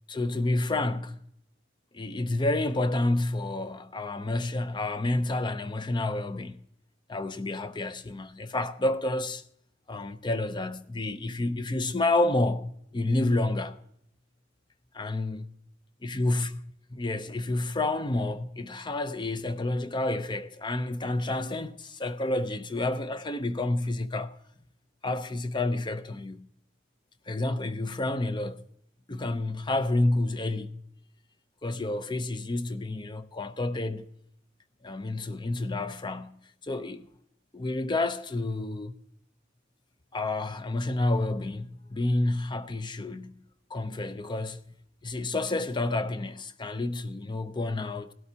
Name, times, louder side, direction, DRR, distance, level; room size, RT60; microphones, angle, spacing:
voice 1, 0.1-1.2 1.9-6.6 7.1-9.4 9.9-13.8 14.9-15.5 16.0-16.6 16.9-24.4 25.0-26.5 27.3-28.6 29.1-30.8 31.6-34.1 34.8-37.1 37.5-38.9 40.1-43.4 43.7-44.6 45.0-48.1, left 2 dB, 25° left, 0.6 m, -29 dB
18.0 x 12.5 x 2.8 m
head